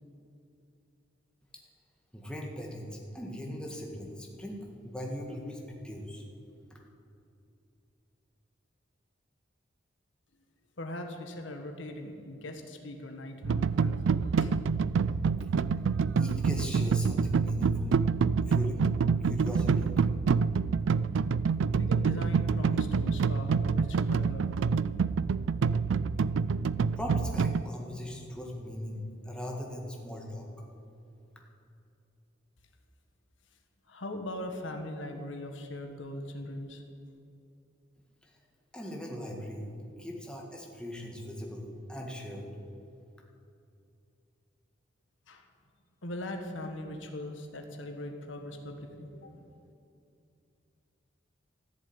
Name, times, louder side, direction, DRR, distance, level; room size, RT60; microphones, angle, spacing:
voice 1, 2.1-6.2 6.7-6.8 16.2-17.9 18.5-18.9 19.2-19.9 27.0-30.5 38.2-38.3 38.7-39.7 40.0-42.5, left 1 dB, 5° left, -1 dB, 1.7 m, -39 dB
voice 2, 10.8-14.5 21.7-24.5 33.9-36.8 45.3-45.4 46.0-49.4, left 1 dB, 80° left, 4 dB, 1.5 m, -40 dB
sound 1, 13.4-27.6, right 5 dB, 80° right, 0.4 m, -27 dB
14.0 x 7.2 x 9.6 m, 2.6 s
head